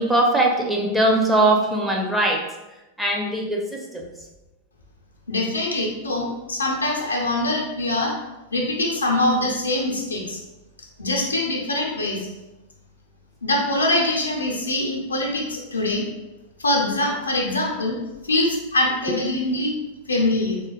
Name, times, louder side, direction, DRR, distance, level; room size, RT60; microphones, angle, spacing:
voice 1, 0.0-2.5 3.0-4.1, right 1 dB, 5° right, -1 dB, 0.4 m, -21 dB
voice 2, 5.3-8.1 8.5-10.4 11.0-12.3 13.4-16.0 16.6-18.0 18.2-19.7 20.1-20.6, left 2 dB, 75° left, -1 dB, 0.5 m, -23 dB
3.2 x 2.1 x 2.2 m, 1.0 s
figure-of-eight pair, 90°, 0 cm